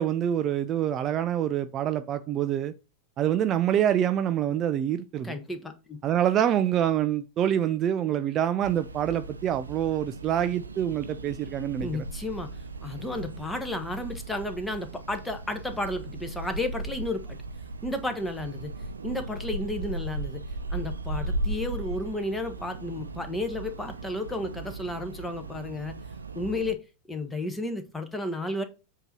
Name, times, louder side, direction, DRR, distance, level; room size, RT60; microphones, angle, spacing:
voice 1, 0.0-2.7 3.2-5.3 6.0-12.0, right 10 dB, 30° right, 0.4 m, -26 dB
voice 2, 5.2-6.0 11.8-12.5 12.8-17.4 17.8-18.7 19.0-20.4 20.7-25.9 26.3-26.8 27.1-28.6, left 1 dB, 5° left, 1.1 m, -32 dB
sound 1, 8.6-26.7, right 2 dB, 75° right, 0.6 m, -37 dB
7.9 x 2.9 x 5.4 m
figure-of-eight pair, 90°, 0 cm